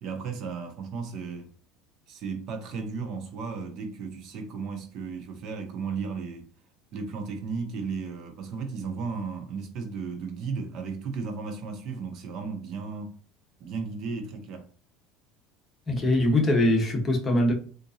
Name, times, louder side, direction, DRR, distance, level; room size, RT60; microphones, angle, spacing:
voice 1, 0.0-1.5 2.1-6.4 6.9-13.1 13.6-14.7, right 5 dB, 50° right, 0.7 m, -35 dB
voice 2, 15.9-17.5, left 1 dB, 20° left, 1.0 m, -22 dB
3.8 x 2.5 x 2.6 m
cardioid pair, 140°, 0 cm